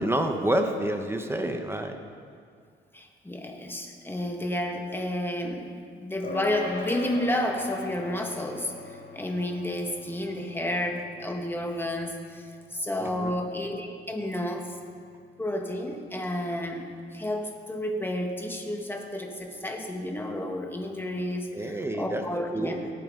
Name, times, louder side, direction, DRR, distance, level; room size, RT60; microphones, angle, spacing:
voice 1, 0.0-2.0 13.0-13.3 21.5-22.2 22.5-22.9, right 1 dB, 10° right, 5 dB, 1.0 m, -28 dB
voice 2, 2.9-8.7 9.1-12.5 12.7-14.7 15.4-22.9, left 1 dB, 10° left, 3 dB, 1.6 m, -31 dB
sound 1, 6.2-15.9, left 4 dB, 50° left, 3.3 m, -42 dB
18.5 x 8.9 x 3.8 m, 2.2 s
cardioid pair, 90°, 20 cm